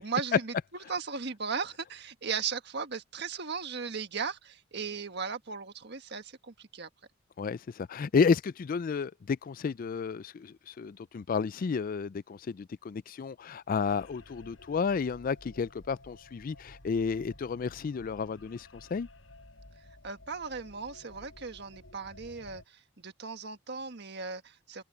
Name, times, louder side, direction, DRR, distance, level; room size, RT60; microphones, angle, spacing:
voice 1, 0.0-0.5 0.9-6.9 20.0-24.8, right 5 dB, 60° right, 1.6 m, -37 dB
voice 2, 7.4-19.1, left 5 dB, 45° left, 0.4 m, -31 dB
sound 1, 13.8-22.7, left 1 dB, 85° left, 6.3 m, -53 dB
open air
head